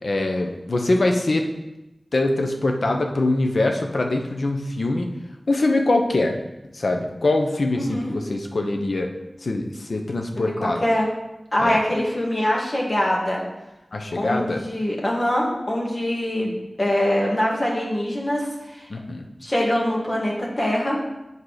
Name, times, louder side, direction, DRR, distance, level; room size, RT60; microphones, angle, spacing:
voice 1, 0.0-1.5 2.1-5.1 5.5-6.4 6.7-9.1 9.4-10.8 11.6-11.8 13.9-14.6 18.9-19.2, left 2 dB, 75° left, 3 dB, 0.9 m, -23 dB
voice 2, 7.8-8.2 10.4-11.1 11.5-13.4 14.2-18.9 19.4-21.0, left 1 dB, 40° left, -2 dB, 1.9 m, -23 dB
8.4 x 4.6 x 4.9 m, 0.98 s
wide cardioid pair, 75°, 0 cm